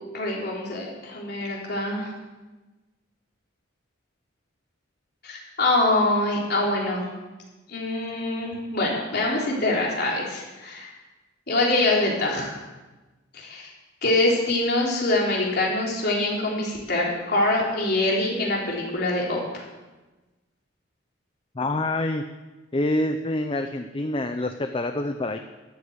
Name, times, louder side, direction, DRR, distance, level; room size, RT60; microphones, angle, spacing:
voice 1, 0.1-2.1 5.2-7.1 7.7-10.9 11.5-12.6 13.3-13.7 14.0-19.6, left 2 dB, 55° left, -3 dB, 3.6 m, -24 dB
voice 2, 21.5-22.2 22.7-25.4, left 1 dB, 30° left, 7 dB, 0.6 m, -26 dB
13.0 x 8.1 x 8.0 m, 1.2 s
head